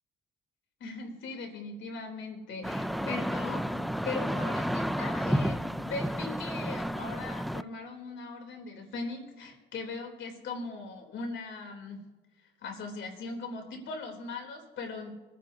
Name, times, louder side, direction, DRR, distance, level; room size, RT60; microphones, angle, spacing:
voice 1, 0.8-12.0 12.6-15.1, left 3 dB, 70° left, 2 dB, 3.4 m, -39 dB
sound 1, 2.6-7.6, equal, ahead, 0.4 m, -31 dB
24.0 x 10.0 x 2.8 m, 1.2 s
cardioid pair, 90°, 20 cm